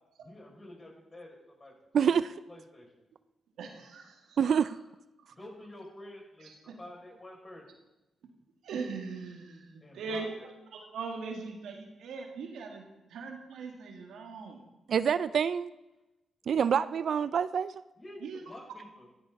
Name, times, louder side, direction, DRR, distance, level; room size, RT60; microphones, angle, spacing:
voice 1, 0.2-2.2 2.5-2.9 4.4-4.5 5.3-6.5 6.8-7.6 9.8-10.5 18.0-19.2, left 1 dB, 35° left, -1 dB, 6.3 m, -48 dB
voice 2, 1.9-2.3 4.4-4.7 14.9-15.7 16.5-17.8, right 7 dB, 70° right, 15 dB, 0.4 m, -26 dB
voice 3, 3.6-4.7 6.4-6.7 8.6-10.3 10.7-14.6 18.2-18.4, right 4 dB, 85° right, 2 dB, 2.2 m, -40 dB
15.0 x 14.0 x 4.1 m, 1.0 s
supercardioid pair, 55°, 0 cm